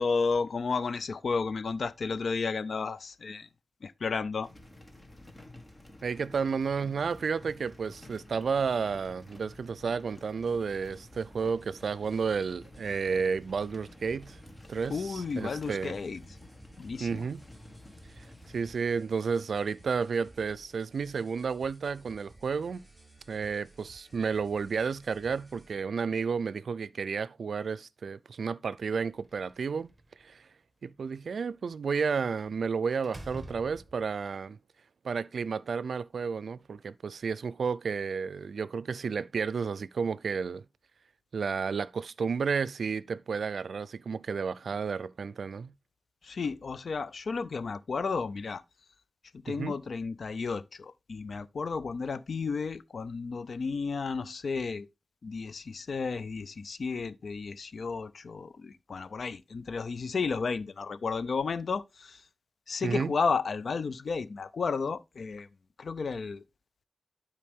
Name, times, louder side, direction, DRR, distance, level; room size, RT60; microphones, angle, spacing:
voice 1, 0.0-3.5 3.8-4.5 14.9-16.2 16.8-17.3 46.2-48.6 49.3-54.9 55.2-62.2 62.7-65.5 65.8-66.4, left 4 dB, 70° left, 0.5 m, -32 dB
sound 1, 4.4-18.8, left 1 dB, 25° left, 1.7 m, -51 dB
voice 2, 6.0-14.4 14.7-15.9 17.0-17.4 18.2-18.3 18.5-22.8 23.3-29.9 30.2-30.5 30.8-34.6 35.0-40.6 41.3-45.7 49.5-49.8 62.8-63.1, right 5 dB, 80° right, 0.4 m, -32 dB
sound 2, 10.4-25.7, right 1 dB, 10° left, 3.9 m, -56 dB
Slam, 29.2-30.2 32.4-32.6 33.0-34.3, right 1 dB, 20° right, 1.5 m, -47 dB
11.5 x 4.8 x 3.6 m
wide cardioid pair, 110°, 0 cm